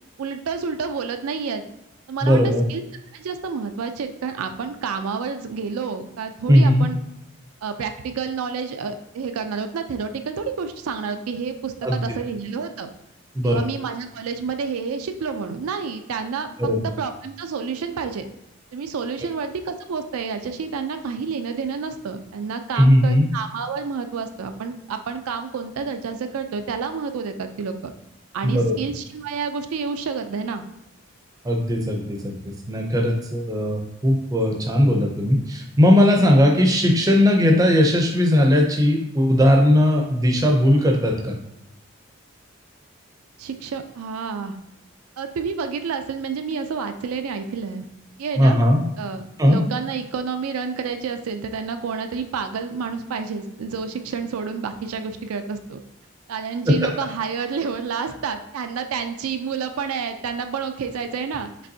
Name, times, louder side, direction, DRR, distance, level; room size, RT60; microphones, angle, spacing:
voice 1, 0.2-1.6 2.1-2.8 3.1-7.0 7.6-12.9 13.4-16.5 16.8-18.3 18.7-27.7 28.3-30.6 43.4-44.6 45.2-47.8 48.2-48.6 49.0-55.8 56.3-61.5, right 5 dB, 90° right, 7 dB, 0.4 m, -29 dB
voice 2, 2.2-2.7 6.5-6.9 11.8-12.0 13.3-13.6 16.6-16.9 22.8-23.3 28.4-28.8 31.4-41.4 48.4-48.8 49.4-49.6 56.7-56.8, equal, 15° right, 1 dB, 0.5 m, -18 dB
5.2 x 3.4 x 2.7 m, 0.87 s
head